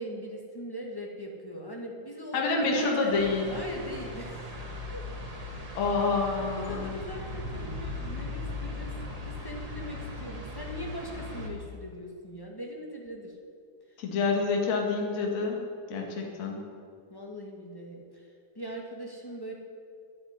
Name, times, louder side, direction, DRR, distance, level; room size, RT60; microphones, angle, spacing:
voice 1, 0.0-3.2 3.5-4.4 4.9-5.0 6.5-8.9 9.2-13.3 17.1-18.3 18.5-19.5, equal, 20° left, -1 dB, 0.5 m, -40 dB
voice 2, 2.3-3.5 5.7-7.0 14.0-15.6 15.9-16.6, left 4 dB, 60° left, 0 dB, 3.1 m, -27 dB
sound 1, 3.1-11.5, left 1 dB, 20° right, 0.9 m, -38 dB
10.5 x 10.5 x 9.4 m, 2.3 s
omnidirectional pair, 3.7 m